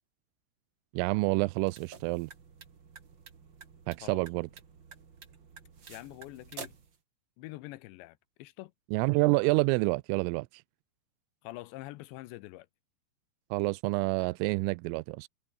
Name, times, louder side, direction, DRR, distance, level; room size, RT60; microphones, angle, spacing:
voice 1, 0.9-2.3 3.9-4.5 8.9-10.6 13.5-15.3, right 25 dB, 85° right, 3.2 m, -28 dB
sound 1, 1.5-7.0, right 6 dB, 45° right, 1.5 m, -50 dB
voice 2, 5.9-6.7 7.4-8.7 11.4-12.7, left 18 dB, 80° left, 2.7 m, -45 dB
omnidirectional pair, 5.8 m